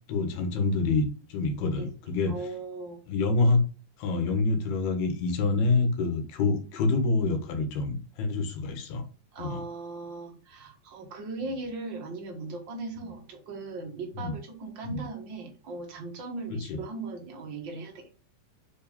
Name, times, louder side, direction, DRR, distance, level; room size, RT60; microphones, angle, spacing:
voice 1, 0.1-2.4 3.1-3.6 4.0-9.0 9.4-9.6 14.2-14.3 14.8-15.0 16.7-16.8, left 3 dB, 85° left, 5 dB, 3.4 m, -26 dB
voice 2, 1.8-3.0 9.3-18.2, right 3 dB, 75° right, 2 dB, 1.0 m, -38 dB
6.3 x 5.0 x 5.2 m, 0.36 s
omnidirectional pair, 4.4 m